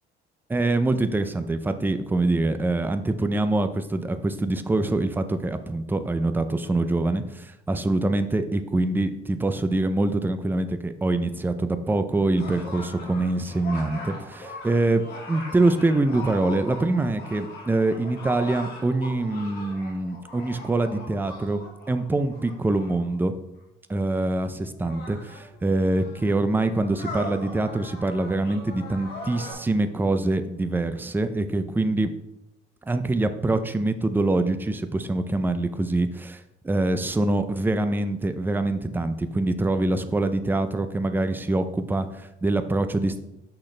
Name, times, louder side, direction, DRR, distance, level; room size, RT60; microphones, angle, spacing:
voice 1, 0.5-23.3 23.9-32.1 32.9-43.2, right 2 dB, 10° right, 9 dB, 0.5 m, -25 dB
sound 1, 12.4-23.2 24.0-24.1 24.7-29.5, left 2 dB, 50° left, 2.2 m, -40 dB
6.4 x 5.9 x 3.3 m, 0.89 s
cardioid pair, 120°, 20 cm